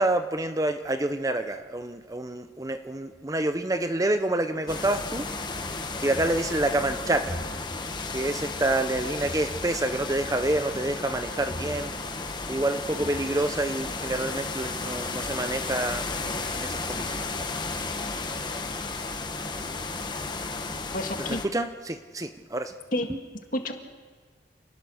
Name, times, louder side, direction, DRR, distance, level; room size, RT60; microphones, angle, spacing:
voice 1, 0.0-5.3 6.0-7.4 8.1-11.9 12.5-17.1 21.5-22.7, right 2 dB, 20° right, 9 dB, 0.7 m, -28 dB
sound 1, 4.7-21.5, left 3 dB, 25° left, 1.3 m, -33 dB
voice 2, 20.6-21.4 22.9-23.1 23.5-23.7, left 1 dB, 45° left, 4 dB, 2.1 m, -30 dB
28.0 x 20.0 x 6.4 m, 1.5 s
head